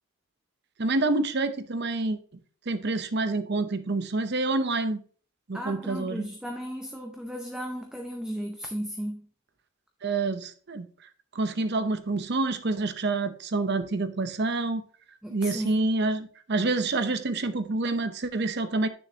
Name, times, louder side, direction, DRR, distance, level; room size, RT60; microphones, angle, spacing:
voice 1, 0.8-2.2 2.7-5.0 5.5-6.3 10.0-10.9 11.3-14.8 15.3-18.9, right 3 dB, 50° right, 0.7 m, -27 dB
voice 2, 5.5-9.3 15.2-15.9, equal, 5° right, 0.6 m, -35 dB
9.4 x 6.5 x 2.8 m
head